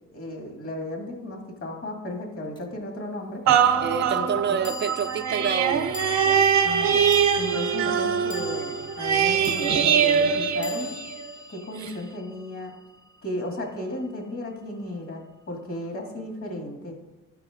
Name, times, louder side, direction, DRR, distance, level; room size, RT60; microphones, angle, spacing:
voice 1, 0.1-3.4 4.1-4.3 6.6-7.0 7.4-10.9 11.5-12.7 13.2-17.0, left 1 dB, 50° left, 2.2 m, -34 dB
sound 1, 2.6-2.7 4.6-13.1, left 4 dB, 15° left, 0.7 m, -41 dB
sound 2, 3.5-11.3 11.8-11.9, right 7 dB, 65° right, 0.7 m, -23 dB
voice 2, 3.8-6.0, right 7 dB, 40° right, 0.4 m, -28 dB
12.5 x 4.9 x 3.8 m
cardioid pair, 90°, 30 cm